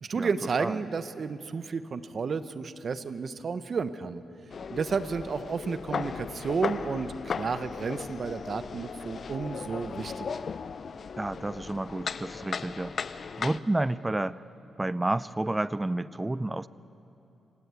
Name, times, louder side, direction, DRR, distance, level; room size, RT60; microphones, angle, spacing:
voice 1, 0.0-4.2 4.7-10.4, right 5 dB, 50° right, 12 dB, 1.0 m, -32 dB
sound 1, 4.5-13.6, left 6 dB, 55° left, 0.6 m, -36 dB
voice 2, 11.2-14.4 14.8-16.7, right 2 dB, 15° right, 17 dB, 0.5 m, -30 dB
27.0 x 17.0 x 8.4 m, 2.9 s
cardioid pair, 85°, 0 cm